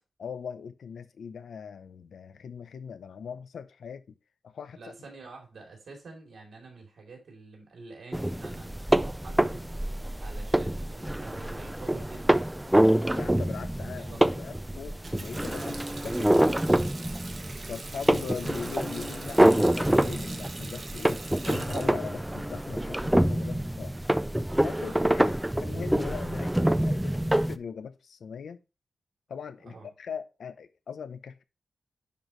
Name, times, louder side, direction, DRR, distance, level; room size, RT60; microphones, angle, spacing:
voice 1, 0.2-4.2 4.4-4.8 13.1-16.6 17.7-24.0 24.6-28.6 29.3-31.4, left 6 dB, 80° left, 0.6 m, -40 dB
voice 2, 4.7-9.7 10.2-12.9 14.0-14.5 24.7-25.0 29.7-29.9, right 3 dB, 65° right, 3.1 m, -47 dB
sound 1, 8.1-27.6, right 1 dB, 5° right, 0.3 m, -26 dB
Water tap faucet, 14.8-23.3, right 3 dB, 35° right, 1.2 m, -44 dB
10.0 x 4.6 x 3.1 m
wide cardioid pair, 160°, 0 cm